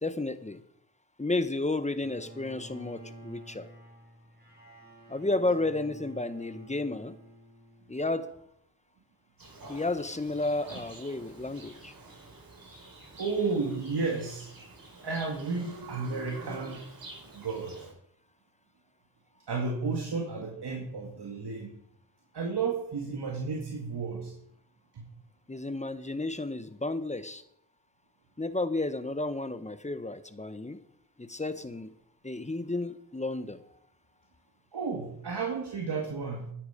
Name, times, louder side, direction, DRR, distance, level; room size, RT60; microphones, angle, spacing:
voice 1, 0.0-0.6 1.2-3.7 5.1-7.1 7.9-8.3 9.7-11.9 25.5-27.4 28.4-30.8 31.2-31.9 32.2-33.6, left 2 dB, 15° left, 11 dB, 1.2 m, -32 dB
Bowed string instrument, 2.0-8.1, right 1 dB, 25° right, 5.3 m, -50 dB
Livestock farm animals working animals, 9.4-17.9, right 2 dB, 50° right, 5.8 m, -48 dB
voice 2, 13.2-14.5 15.0-16.8 17.3-17.8 19.5-21.7 22.3-24.3 25.0-25.1 34.7-36.5, right 4 dB, 65° right, -1 dB, 2.5 m, -32 dB
12.5 x 10.0 x 5.2 m, 0.71 s
cardioid pair, 55°, 43 cm